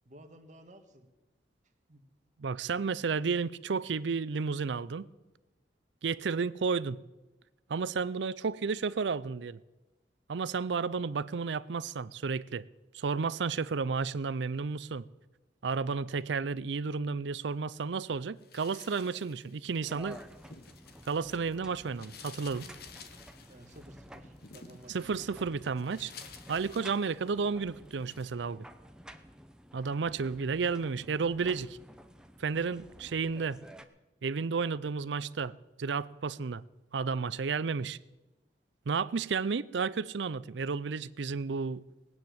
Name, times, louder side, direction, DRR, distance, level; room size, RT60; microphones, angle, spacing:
voice 1, 0.0-1.1 1.9-2.0 23.5-25.6, right 1 dB, 45° right, 1.7 m, -54 dB
voice 2, 2.4-5.1 6.0-7.0 7.7-9.6 10.3-12.6 12.9-15.1 15.6-20.2 21.1-22.7 24.9-26.1 26.5-28.6 29.7-31.8 32.4-33.6 34.2-35.5 35.8-36.6 36.9-38.0 38.9-41.8, right 5 dB, 85° right, 0.5 m, -32 dB
sound 1, 18.4-21.6 21.8-27.5 27.9-28.3, left 6 dB, 60° left, 1.2 m, -53 dB
sound 2, 19.8-33.8, equal, 5° right, 0.8 m, -52 dB
19.0 x 8.9 x 7.8 m
head